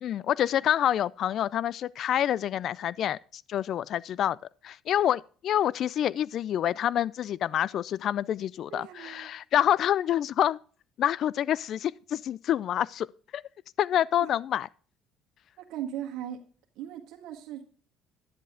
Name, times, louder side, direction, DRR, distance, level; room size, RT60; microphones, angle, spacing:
voice 1, 0.0-4.4 4.6-10.6 11.0-13.1 13.3-13.4 13.8-14.7, left 11 dB, 60° left, 0.3 m, -27 dB
voice 2, 8.7-9.3 14.2-14.3 15.6-16.4 16.7-17.6, right 11 dB, 75° right, 1.6 m, -38 dB
10.5 x 7.5 x 3.6 m
supercardioid pair, 80°, 0 cm